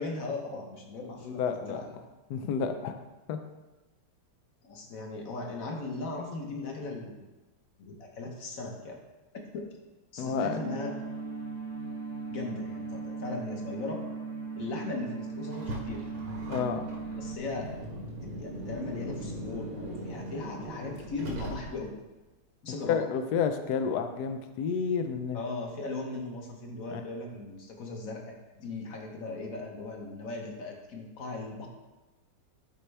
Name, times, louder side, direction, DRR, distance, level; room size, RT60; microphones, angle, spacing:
voice 1, 0.0-1.9 4.6-7.3 7.8-9.0 9.5-9.7 10.1-10.9 12.3-14.0 14.5-16.0 17.2-17.7 18.2-22.0 22.6-23.0 25.3-31.7, left 3 dB, 50° left, 1 dB, 1.3 m, -38 dB
voice 2, 1.2-1.8 2.3-3.0 3.3-3.4 10.2-10.6 16.5-16.8 22.8-25.4 26.9-27.0, left 6 dB, 80° left, 7 dB, 0.9 m, -30 dB
sound 1, 10.3-17.4, right 4 dB, 45° right, 1.2 m, -38 dB
Car, 15.5-22.0, equal, 80° right, 2.2 m, -39 dB
12.5 x 4.4 x 3.3 m, 1.1 s
omnidirectional pair, 2.4 m